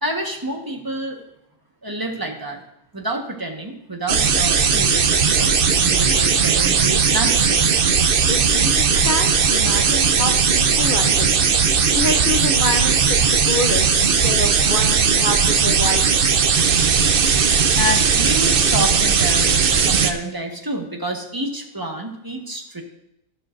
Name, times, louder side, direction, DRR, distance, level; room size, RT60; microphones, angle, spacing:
voice 1, 0.0-1.2 1.8-2.6 2.9-7.6 8.9-9.1 11.1-11.2 17.7-22.8, right 1 dB, 15° right, 1 dB, 1.3 m, -28 dB
sound 1, 4.1-20.1, right 6 dB, 55° right, 0.6 m, -17 dB
voice 2, 8.3-11.5 11.9-16.2, left 2 dB, 45° left, 2 dB, 0.7 m, -27 dB
13.0 x 12.0 x 2.6 m, 0.81 s
omnidirectional pair, 1.7 m